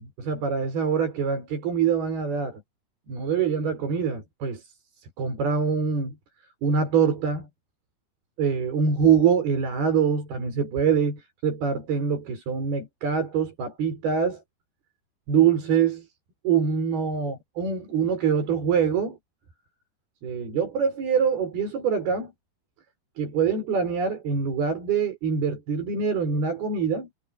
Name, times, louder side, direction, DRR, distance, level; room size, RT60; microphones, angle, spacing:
voice 1, 0.0-2.6 3.1-4.6 5.2-6.2 6.6-7.5 8.4-14.4 15.3-16.1 16.4-19.2 20.2-22.3 23.2-27.1, right 6 dB, 80° right, 7.6 m, -24 dB
omnidirectional pair, 4.4 m